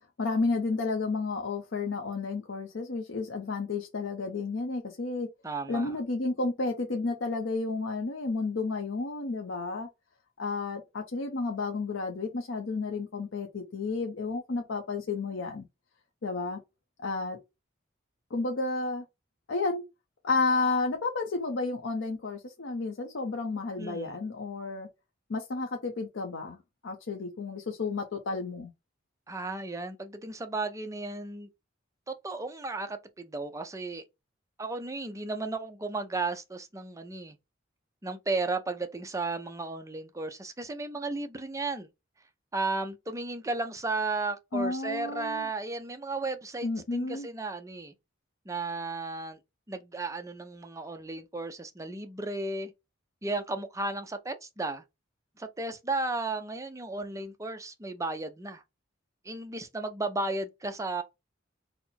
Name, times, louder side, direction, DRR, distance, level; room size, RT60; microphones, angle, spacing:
voice 1, 0.2-5.3 5.7-9.9 10.4-15.7 16.2-16.6 17.0-17.4 18.3-19.0 19.5-19.8 20.2-24.9 25.3-26.6 26.8-28.7 44.5-45.5 46.6-47.3, left 3 dB, 75° left, 0.7 m, -31 dB
voice 2, 5.4-6.0 23.8-24.2 29.3-31.5 32.1-34.0 34.6-37.4 38.0-41.9 42.5-47.9 48.5-49.4 49.7-52.7 53.2-54.8 55.4-58.6 59.2-61.0, right 3 dB, 15° right, 0.5 m, -34 dB
4.2 x 2.0 x 4.1 m
head